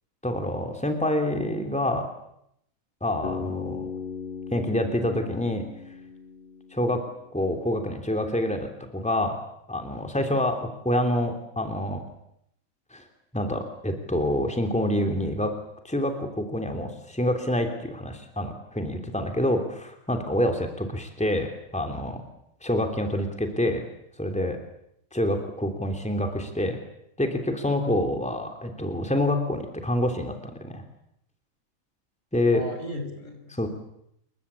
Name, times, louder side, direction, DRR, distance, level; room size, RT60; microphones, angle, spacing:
voice 1, 0.2-2.1 3.0-3.9 4.5-5.6 6.7-7.0 7.3-9.4 9.7-12.0 12.9-13.0 13.3-15.5 15.8-22.2 22.6-23.8 24.2-24.6 25.1-26.8 27.2-30.3 30.6-30.8 32.3-32.6 33.5-33.7, left 1 dB, 5° left, 4 dB, 3.2 m, -27 dB
Bass guitar, 3.2-7.3, left 5 dB, 40° left, 1.8 m, -37 dB
voice 2, 32.5-33.7, left 1 dB, 60° left, 6 dB, 5.7 m, -36 dB
28.0 x 23.5 x 8.5 m, 0.75 s
omnidirectional pair, 1.5 m